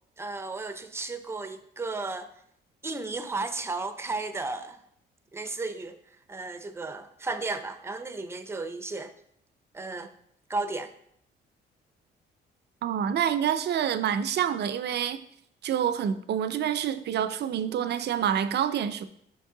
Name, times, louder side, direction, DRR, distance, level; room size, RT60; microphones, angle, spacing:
voice 1, 0.2-2.3 2.8-4.8 5.3-6.0 6.3-9.1 9.7-10.1 10.5-10.9, right 3 dB, 15° right, 0.6 m, -34 dB
voice 2, 12.8-15.2 15.6-19.1, right 9 dB, 60° right, 0.5 m, -27 dB
5.4 x 5.2 x 3.8 m
cardioid pair, 90°, 20 cm